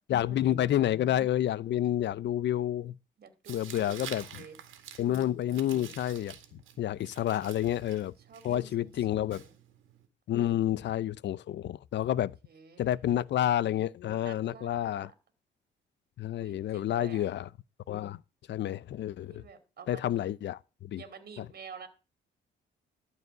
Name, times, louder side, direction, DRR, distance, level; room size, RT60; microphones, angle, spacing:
voice 1, 0.1-3.0 3.5-4.4 5.0-8.1 8.4-9.4 10.3-12.3 12.8-15.1 16.2-17.5 17.9-18.2 18.5-19.4 19.9-21.0 21.4-21.5, left 12 dB, 65° left, 0.6 m, -29 dB
voice 2, 3.2-4.6 7.9-9.6 12.1-13.1 14.2-15.1 16.3-17.2 19.4-20.3 20.9-21.9, right 6 dB, 50° right, 2.4 m, -50 dB
Tearing, 3.4-10.1, right 9 dB, 80° right, 2.0 m, -49 dB
12.5 x 4.9 x 7.9 m
cardioid pair, 90°, 20 cm